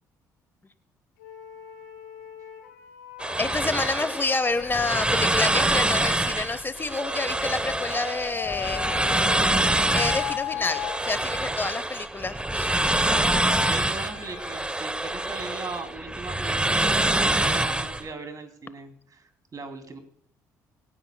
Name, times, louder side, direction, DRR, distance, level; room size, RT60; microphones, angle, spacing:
Wind instrument woodwind instrument, 1.2-6.3 6.9-11.6 12.4-14.6, left 9 dB, 85° left, 2.5 m, -37 dB
sound 1, 3.2-18.1, right 1 dB, 10° right, 0.9 m, -25 dB
voice 1, 3.4-9.0 9.9-12.7, left 3 dB, 25° left, 13 dB, 0.8 m, -28 dB
voice 2, 13.6-20.0, right 3 dB, 40° right, 7 dB, 2.7 m, -39 dB
25.5 x 10.0 x 2.2 m, 0.63 s
hypercardioid pair, 55°, 9 cm